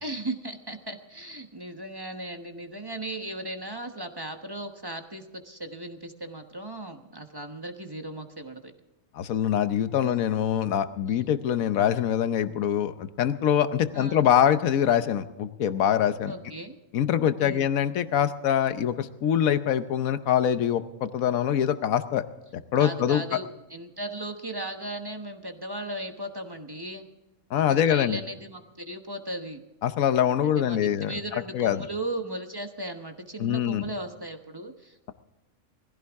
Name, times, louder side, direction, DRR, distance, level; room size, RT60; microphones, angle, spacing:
voice 1, 0.0-8.7 10.0-10.2 11.1-11.2 13.9-14.3 16.3-16.8 17.4-17.7 22.8-27.1 27.7-29.6 30.4-35.1, right 1 dB, 20° right, 6 dB, 1.1 m, -37 dB
voice 2, 9.1-16.3 16.9-22.2 22.7-23.2 27.5-28.2 29.8-31.1 31.5-31.9 33.4-33.8, left 9 dB, 75° left, 11 dB, 1.3 m, -24 dB
21.0 x 15.5 x 3.6 m, 1.0 s
omnidirectional pair, 1.5 m